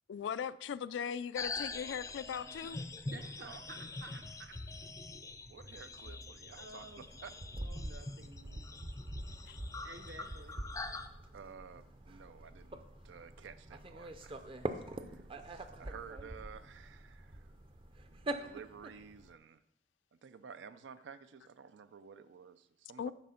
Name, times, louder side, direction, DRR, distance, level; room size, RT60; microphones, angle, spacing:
voice 1, 0.1-2.8 9.5-9.6 23.0-23.1, left 7 dB, 80° left, 0.3 m, -39 dB
sound 1, 1.3-18.3, right 1 dB, 50° right, 1.2 m, -60 dB
sound 2, 1.4-11.1, left 3 dB, 20° left, 0.4 m, -44 dB
voice 2, 3.0-4.6 6.5-7.0 7.6-8.6 9.8-10.6, right 3 dB, 70° right, 1.0 m, -52 dB
voice 3, 5.4-7.4 11.3-14.4 14.9-17.5 18.1-19.6 20.2-23.1, right 6 dB, 90° right, 0.4 m, -52 dB
sound 3, 6.7-19.3, right 1 dB, 30° right, 0.5 m, -45 dB
9.9 x 4.3 x 5.6 m
head